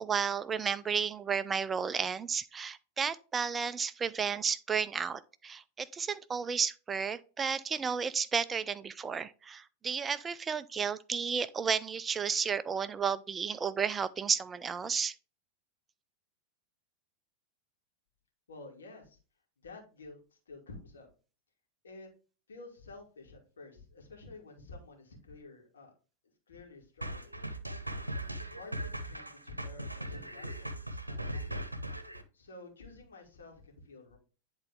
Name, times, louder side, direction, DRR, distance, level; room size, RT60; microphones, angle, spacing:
voice 1, 0.0-15.1, right 6 dB, 20° right, 0.4 m, -32 dB
voice 2, 18.5-19.2 19.6-21.1 21.8-22.1 22.5-25.9 26.5-27.3 28.5-30.7 31.0-31.7 32.3-34.2, left 3 dB, 70° left, 2.5 m, -50 dB
sound 1, 27.0-32.2, right 1 dB, 85° right, 0.8 m, -39 dB
10.5 x 3.9 x 3.5 m
figure-of-eight pair, 90°, 0 cm